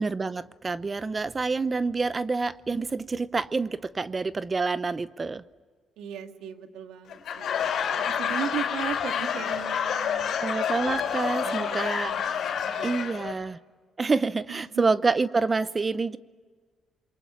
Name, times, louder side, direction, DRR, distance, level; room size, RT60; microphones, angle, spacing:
voice 1, 0.0-5.4 10.4-12.1 12.8-13.6 14.0-16.2, right 4 dB, 30° right, 16 dB, 0.7 m, -27 dB
voice 2, 6.0-7.6 8.0-10.4 11.4-13.4 14.5-14.8, right 8 dB, 85° right, 6 dB, 1.9 m, -37 dB
Laughter / Crowd, 7.1-13.3, left 8 dB, 70° left, 4.2 m, -28 dB
27.5 x 23.0 x 8.7 m, 1.5 s
cardioid pair, 90°, 0 cm